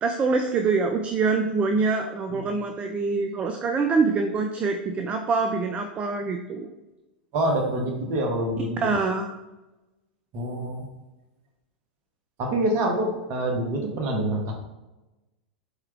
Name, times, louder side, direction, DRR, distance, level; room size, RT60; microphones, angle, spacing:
voice 1, 0.0-6.7 8.8-9.3, right 4 dB, 25° right, 4 dB, 0.3 m, -25 dB
voice 2, 7.3-8.9 10.3-10.9 12.4-14.5, right 1 dB, 45° right, 2 dB, 1.0 m, -26 dB
4.4 x 3.5 x 2.3 m, 1.0 s
figure-of-eight pair, 90°, 5 cm